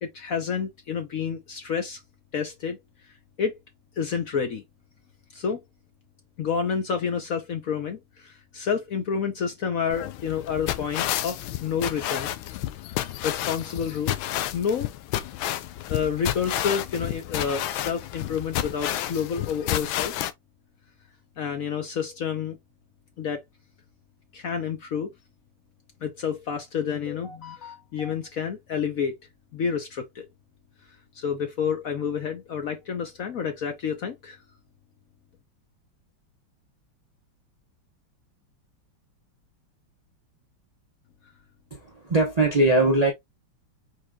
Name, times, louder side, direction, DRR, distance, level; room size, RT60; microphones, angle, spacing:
voice 1, 0.0-2.0 2.3-2.8 3.4-3.5 4.0-4.6 5.3-5.6 6.4-12.4 13.2-14.2 14.5-14.9 15.9-20.1 21.4-22.6 23.2-23.4 24.3-25.1 26.0-29.1 29.5-30.3 31.1-34.4, left 6 dB, 60° left, 0.9 m, -29 dB
sound 1, 9.9-20.3, left 13 dB, 85° left, 1.3 m, -30 dB
voice 2, 41.7-43.1, right 2 dB, 45° right, 0.5 m, -21 dB
4.7 x 4.5 x 2.3 m
omnidirectional pair, 2.2 m